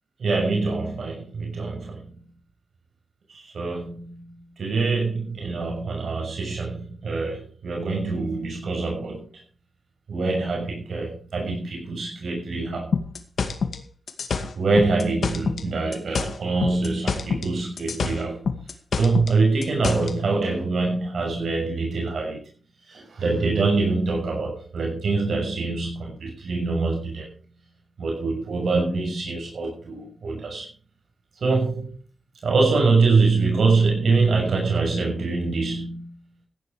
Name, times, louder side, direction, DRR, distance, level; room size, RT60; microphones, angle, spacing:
voice 1, 0.2-2.1 3.3-9.3 10.1-12.9 14.6-18.5 19.0-22.4 22.9-27.3 28.0-30.7 31.4-32.0 32.4-36.2, right 3 dB, 85° right, 0 dB, 6.4 m, -24 dB
sound 1, 12.9-15.7 15.9-17.5 17.8-20.1, left 5 dB, 85° left, 2.2 m, -27 dB
15.5 x 11.0 x 4.9 m, 0.37 s
wide cardioid pair, 75°, 0 cm